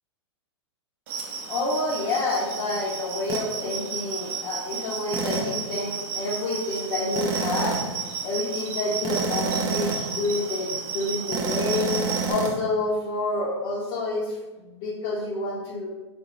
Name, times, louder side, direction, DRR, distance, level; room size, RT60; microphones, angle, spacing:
sound 1, 1.1-12.3, right 6 dB, 50° right, 0.8 m, -33 dB
voice 1, 1.5-7.8 8.2-11.9 12.3-14.4 14.7-15.9, left 2 dB, 40° left, -4 dB, 0.7 m, -28 dB
sound 2, 3.3-3.5 5.1-5.6 7.2-8.0 9.0-10.2 11.3-12.5, right 4 dB, 25° right, 0.5 m, -28 dB
3.8 x 2.6 x 2.9 m, 1.2 s
hypercardioid pair, 115°, 15 cm